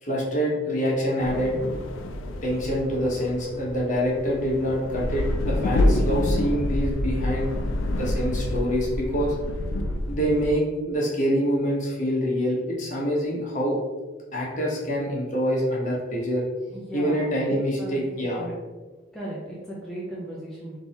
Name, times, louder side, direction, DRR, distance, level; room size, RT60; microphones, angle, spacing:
voice 1, 0.0-1.5 2.4-7.5 7.9-9.3 10.1-13.8 14.3-16.4 16.9-18.5, equal, 40° left, -5 dB, 1.2 m, -25 dB
sound 1, 1.2-10.5, left 1 dB, 85° left, 0.4 m, -27 dB
voice 2, 16.7-17.3 17.8-18.5 19.1-20.8, right 1 dB, ahead, -6 dB, 0.6 m, -36 dB
3.7 x 2.9 x 4.2 m, 1.3 s
head